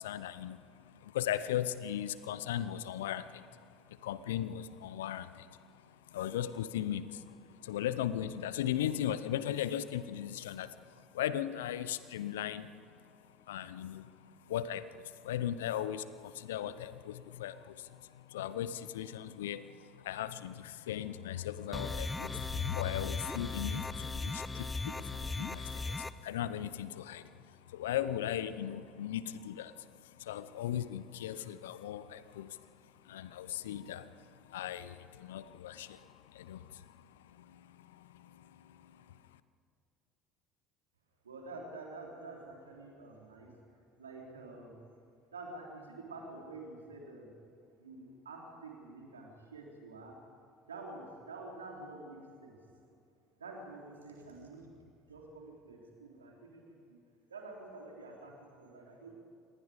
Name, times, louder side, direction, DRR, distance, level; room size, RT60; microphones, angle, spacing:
voice 1, 0.0-39.4, left 11 dB, 75° left, 15 dB, 0.8 m, -38 dB
sound 1, 21.7-26.1, left 3 dB, 15° left, 0.9 m, -37 dB
voice 2, 41.2-43.5 44.0-44.8 45.3-47.3 47.8-50.1 50.7-52.6 53.4-54.7 55.1-57.0 57.3-59.1, right 2 dB, 85° right, 0 dB, 3.6 m, -48 dB
26.5 x 20.0 x 5.1 m, 2.5 s
hypercardioid pair, 65°, 0 cm